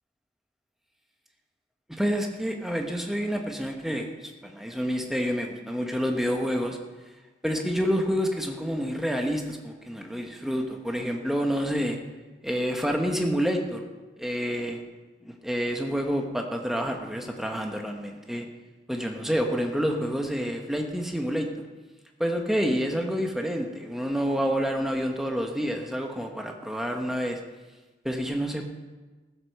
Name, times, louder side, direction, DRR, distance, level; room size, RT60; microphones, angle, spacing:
voice 1, 1.9-6.8 7.4-12.0 12.4-13.8 14.2-14.8 15.2-18.4 18.9-21.5 22.2-27.4 28.0-28.7, equal, ahead, 2 dB, 1.1 m, -28 dB
14.5 x 8.1 x 6.6 m, 1.3 s
head